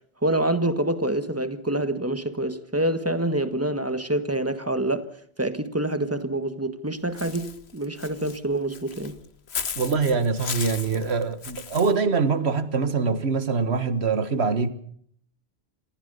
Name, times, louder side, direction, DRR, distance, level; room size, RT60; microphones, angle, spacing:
voice 1, 0.2-5.1 5.4-9.2, right 1 dB, 15° right, 1.6 m, -26 dB
Walk footsteps / Bird, 7.2-11.9, left 6 dB, 80° left, 1.5 m, -36 dB
voice 2, 9.8-14.7, right 4 dB, 90° right, 1.8 m, -24 dB
27.5 x 15.0 x 6.8 m
omnidirectional pair, 1.1 m